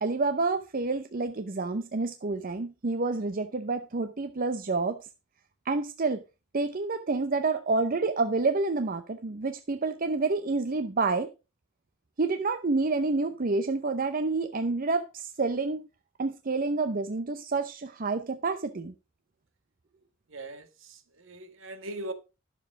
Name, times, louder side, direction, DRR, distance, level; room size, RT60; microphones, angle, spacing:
voice 1, 0.0-5.0 5.7-6.2 6.5-11.3 12.2-15.8 16.2-18.9, right 3 dB, 45° right, 0.7 m, -28 dB
voice 2, 20.3-22.1, right 2 dB, 70° right, 1.6 m, -40 dB
11.5 x 6.9 x 4.8 m
head